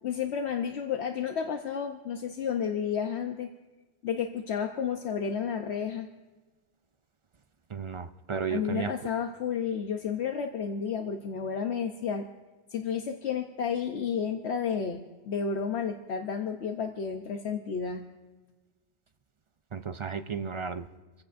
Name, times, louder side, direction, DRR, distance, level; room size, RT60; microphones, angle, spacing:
voice 1, 0.0-3.5 4.0-6.1 8.5-12.3 12.7-18.0, left 7 dB, 75° left, 4 dB, 1.1 m, -31 dB
voice 2, 7.7-8.9 19.7-20.8, right 6 dB, 45° right, 9 dB, 0.4 m, -33 dB
28.5 x 15.5 x 2.6 m, 1.3 s
omnidirectional pair, 1.2 m